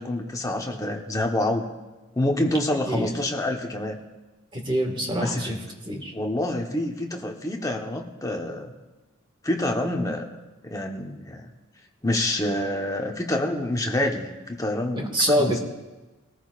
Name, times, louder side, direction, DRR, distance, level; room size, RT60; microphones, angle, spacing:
voice 1, 0.0-1.7 2.1-4.0 5.2-5.5 6.1-8.7 9.4-10.3 10.6-11.5 12.0-15.6, left 1 dB, 15° left, 2 dB, 1.1 m, -27 dB
voice 2, 4.5-5.6 5.9-6.1 15.1-15.6, equal, 25° right, 2 dB, 1.8 m, -24 dB
21.0 x 14.0 x 2.5 m, 1.1 s
head